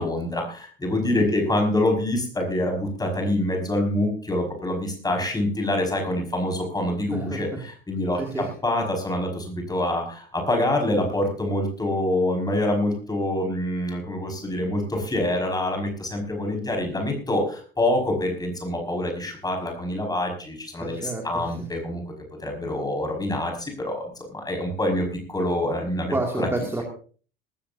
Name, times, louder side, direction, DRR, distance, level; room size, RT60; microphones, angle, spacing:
voice 1, 0.0-22.0 22.4-26.5, left 1 dB, 15° left, 2 dB, 5.3 m, -26 dB
voice 2, 7.1-7.4 8.2-8.5 10.9-11.1 20.8-21.5 26.1-26.8, right 2 dB, 10° right, 2 dB, 2.3 m, -29 dB
19.0 x 15.0 x 2.7 m, 0.40 s
figure-of-eight pair, 65°, 29 cm